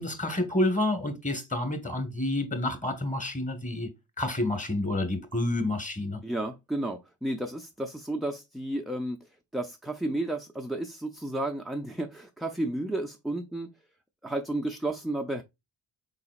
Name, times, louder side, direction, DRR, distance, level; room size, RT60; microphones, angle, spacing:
voice 1, 0.0-3.9 4.2-6.2, left 1 dB, 15° left, 1.4 m, -29 dB
voice 2, 6.2-13.7 14.2-15.4, right 1 dB, ahead, 0.4 m, -32 dB
4.1 x 3.9 x 2.3 m
supercardioid pair, 45°, 48 cm